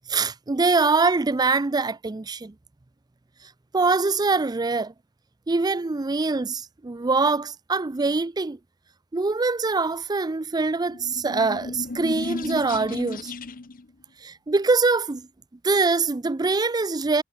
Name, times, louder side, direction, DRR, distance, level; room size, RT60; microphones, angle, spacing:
voice 1, 0.1-2.5 3.7-4.9 5.5-8.6 9.1-13.3 14.2-15.3 15.6-17.2, right 3 dB, 20° right, 0.5 m, -23 dB
sound 1, 10.7-13.8, left 3 dB, 40° left, 0.8 m, -34 dB
head